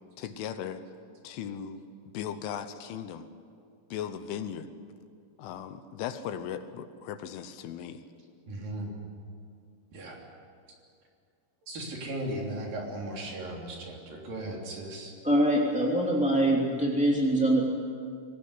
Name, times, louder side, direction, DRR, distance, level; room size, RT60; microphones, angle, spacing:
voice 1, 0.2-0.8 1.2-1.8 2.1-3.3 3.9-4.7 5.4-8.0, left 9 dB, 80° left, 10 dB, 3.3 m, -37 dB
voice 2, 8.5-8.9 9.9-10.2 11.7-15.1, right 1 dB, 50° right, -1 dB, 4.6 m, -37 dB
voice 3, 15.2-17.6, right 1 dB, 5° right, -4 dB, 1.2 m, -24 dB
24.0 x 19.0 x 9.8 m, 2.3 s
omnidirectional pair, 5.8 m